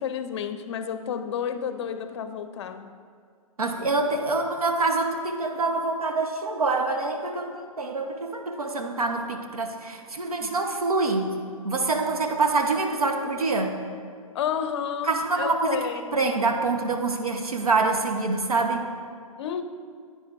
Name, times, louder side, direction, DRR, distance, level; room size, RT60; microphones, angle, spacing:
voice 1, 0.0-2.9 14.3-16.2 19.4-19.6, left 8 dB, 50° left, 0.6 m, -31 dB
voice 2, 3.6-11.3 11.6-13.8 15.1-15.9 16.1-18.9, right 3 dB, 80° right, 1.0 m, -26 dB
9.4 x 9.4 x 2.5 m
figure-of-eight pair, 125°, 19 cm